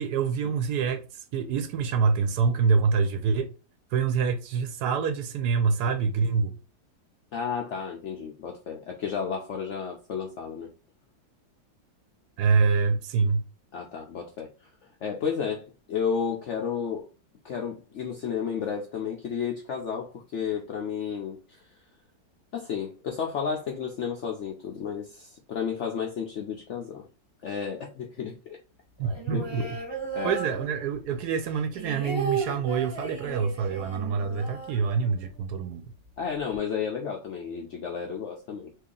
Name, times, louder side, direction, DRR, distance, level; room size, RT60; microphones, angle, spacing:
voice 1, 0.0-3.5 3.9-6.5 12.4-13.4 29.0-29.7 30.2-35.9, right 5 dB, 70° right, 1.0 m, -26 dB
voice 2, 7.3-10.7 13.7-14.7 15.0-17.1 17.4-21.7 22.5-27.0 27.4-28.6 29.3-29.8 30.1-30.3 36.2-38.7, left 7 dB, 85° left, 0.6 m, -32 dB
sound 1, 29.0-31.1 31.5-35.4 35.7-35.8 36.1-36.6, right 4 dB, 20° right, 0.8 m, -35 dB
3.1 x 2.8 x 3.7 m
omnidirectional pair, 2.0 m